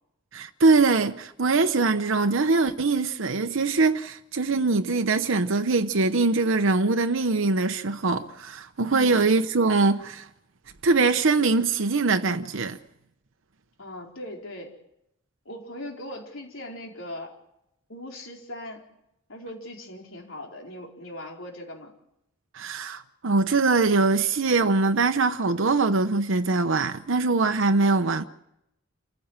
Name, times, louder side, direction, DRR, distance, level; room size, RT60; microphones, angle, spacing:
voice 1, 0.3-10.3 10.8-12.8 22.5-28.2, right 3 dB, 65° right, 0.9 m, -22 dB
voice 2, 8.9-9.3 13.8-14.7 15.4-17.3 17.9-18.8 19.3-21.9, left 1 dB, 70° left, 4.5 m, -39 dB
28.0 x 15.5 x 7.4 m
head